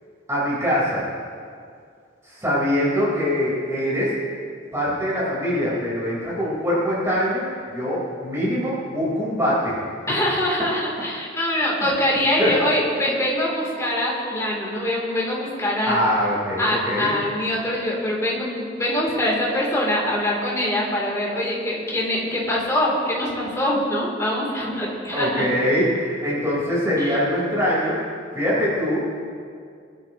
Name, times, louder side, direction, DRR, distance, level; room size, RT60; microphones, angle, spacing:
voice 1, 0.3-1.1 2.2-4.2 4.7-9.8 10.1-10.2 12.4-12.5 15.9-17.1 25.1-28.0 28.3-29.2, equal, 15° right, -7 dB, 4.2 m, -23 dB
voice 2, 10.1-16.0 16.6-25.4 27.0-27.1, left 1 dB, 15° left, -4 dB, 3.2 m, -23 dB
22.0 x 12.5 x 3.0 m, 2.2 s
head